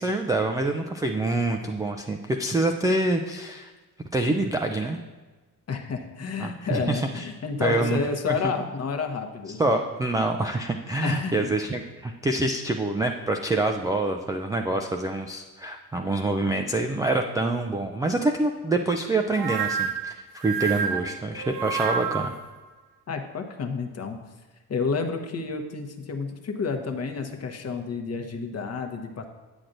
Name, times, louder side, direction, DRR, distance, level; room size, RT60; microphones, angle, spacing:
voice 1, 0.0-3.7 4.1-5.0 6.4-7.2 7.6-8.0 8.3-8.5 9.6-22.3, right 2 dB, 10° right, 3 dB, 0.3 m, -26 dB
voice 2, 5.7-9.8 11.0-11.6 23.1-24.2 24.7-29.2, left 4 dB, 35° left, 5 dB, 0.9 m, -30 dB
sound 1, 19.3-22.4, right 7 dB, 60° right, 0.9 m, -29 dB
8.5 x 6.1 x 2.6 m, 1.3 s
hypercardioid pair, 50°, 45 cm